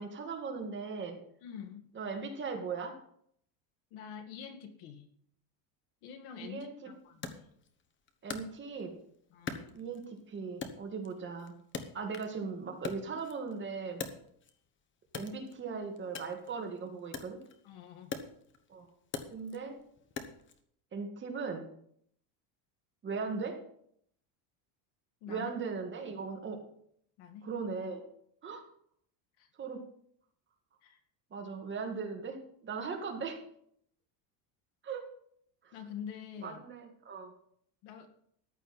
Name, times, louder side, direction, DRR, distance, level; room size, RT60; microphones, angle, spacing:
voice 1, 0.0-1.2 1.9-3.0 6.4-6.9 8.2-9.0 9.7-11.6 11.9-14.1 15.1-17.4 18.7-18.9 19.3-19.8 20.9-21.7 23.0-23.7 25.3-26.7 27.4-28.1 28.4-28.7 29.6-29.9 31.3-33.4 34.8-35.1 35.6-35.7 36.4-37.3, right 5 dB, 25° right, 3 dB, 1.9 m, -39 dB
voice 2, 1.4-1.8 3.9-5.1 6.0-7.5 9.3-9.8 17.6-18.2 25.2-25.5 27.2-27.5 29.4-29.5 30.8-31.0 35.7-36.6 37.8-38.1, left 8 dB, 75° left, 7 dB, 2.0 m, -46 dB
Wood, 7.2-9.0 9.5-10.2 10.6-12.4 12.7-14.6 15.1-20.6, left 5 dB, 25° left, 1.1 m, -43 dB
14.0 x 11.0 x 4.3 m, 0.67 s
cardioid pair, 160°, 46 cm